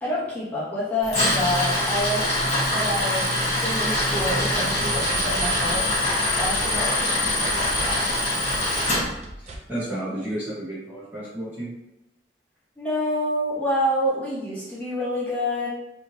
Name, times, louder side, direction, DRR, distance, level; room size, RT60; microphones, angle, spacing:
voice 1, 0.0-2.3 2.7-6.0 6.4-8.1 12.8-15.7, left 1 dB, 10° left, -10 dB, 1.1 m, -28 dB
Tools, 1.0-9.0, left 1 dB, 40° left, 1.0 m, -24 dB
sound 1, 3.9-9.6, right 1 dB, 40° right, 0.4 m, -37 dB
voice 2, 9.4-11.7, right 1 dB, 10° right, -11 dB, 0.8 m, -32 dB
3.1 x 2.6 x 2.6 m, 0.91 s
head